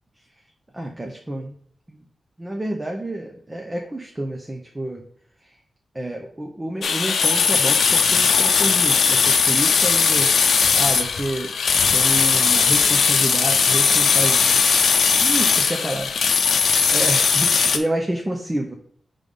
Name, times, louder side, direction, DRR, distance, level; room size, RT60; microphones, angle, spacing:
voice 1, 0.7-1.6 1.9-2.0 2.4-5.0 5.4-5.5 5.9-14.6 15.2-18.7, right 1 dB, 15° right, 2 dB, 0.6 m, -29 dB
sound 1, 6.8-17.8, left 5 dB, 80° left, 0.6 m, -18 dB
5.3 x 3.7 x 5.3 m, 0.64 s
wide cardioid pair, 145°, 0 cm